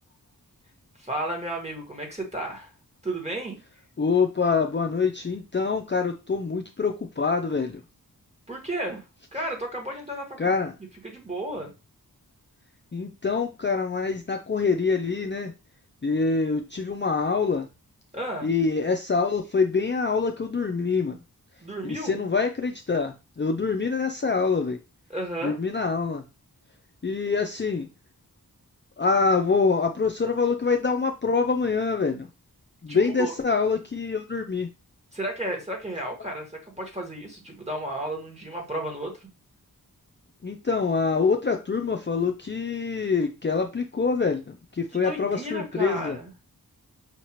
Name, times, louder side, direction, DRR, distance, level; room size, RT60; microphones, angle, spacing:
voice 1, 1.0-2.7 3.0-3.6 8.5-9.0 9.3-10.5 11.0-11.7 18.1-18.5 21.6-22.2 25.1-25.6 32.9-33.3 35.1-39.3 44.9-46.3, right 1 dB, 20° right, 1 dB, 1.9 m, -33 dB
voice 2, 4.0-7.8 10.4-10.7 12.9-15.5 16.0-17.7 18.4-21.2 21.8-24.8 25.4-26.2 27.0-27.9 29.0-32.3 32.8-34.7 40.4-46.2, left 4 dB, 30° left, 4 dB, 0.5 m, -25 dB
5.7 x 2.8 x 3.0 m, 0.27 s
wide cardioid pair, 50°, 37 cm